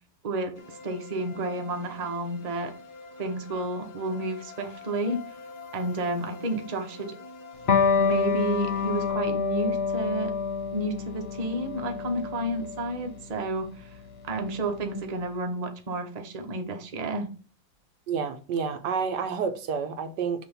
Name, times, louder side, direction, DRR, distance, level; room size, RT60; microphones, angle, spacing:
voice 1, 0.2-2.7 3.2-5.2 5.7-7.1 8.0-10.3 10.7-13.9 14.2-17.3, right 2 dB, 30° right, 0.7 m, -31 dB
sound 1, 0.6-9.1, left 4 dB, 70° left, 1.7 m, -45 dB
Electric guitar, 7.7-14.8, left 5 dB, 45° left, 1.0 m, -28 dB
voice 2, 18.1-20.5, right 6 dB, 70° right, 1.3 m, -29 dB
6.2 x 2.9 x 5.5 m
omnidirectional pair, 2.0 m